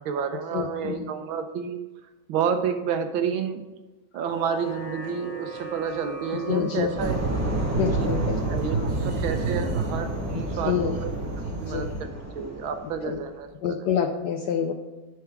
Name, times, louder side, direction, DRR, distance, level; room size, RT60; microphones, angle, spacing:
voice 1, 0.0-1.8 2.3-3.6 4.1-7.2 7.8-8.1 8.5-8.8 9.0-11.1 11.6-13.8, right 7 dB, 75° right, 7 dB, 1.5 m, -30 dB
voice 2, 0.5-1.1 6.5-6.9 7.7-8.4 8.7-8.9 10.6-10.9 11.7-11.9 13.0-13.2 13.6-14.7, left 8 dB, 75° left, 5 dB, 1.0 m, -27 dB
sound 1, 4.2-10.6, right 2 dB, 40° left, 0.5 m, -41 dB
sound 2, 7.0-13.3, right 1 dB, 25° right, 0.3 m, -32 dB
sound 3, 7.0-12.0, right 4 dB, 50° right, 1.1 m, -30 dB
10.5 x 4.7 x 4.6 m, 1.1 s
omnidirectional pair, 2.3 m